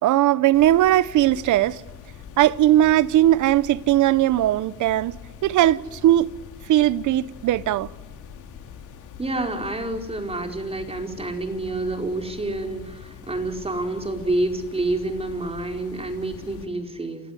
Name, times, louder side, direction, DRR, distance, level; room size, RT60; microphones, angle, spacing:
voice 1, 0.0-1.8 2.4-6.3 6.7-7.9, right 13 dB, 80° right, 0.8 m, -19 dB
sound 1, 0.5-16.7, left 7 dB, 80° left, 3.6 m, -43 dB
voice 2, 9.2-17.2, right 2 dB, 20° right, 4.9 m, -28 dB
28.5 x 16.5 x 9.7 m
cardioid pair, 90°, 30 cm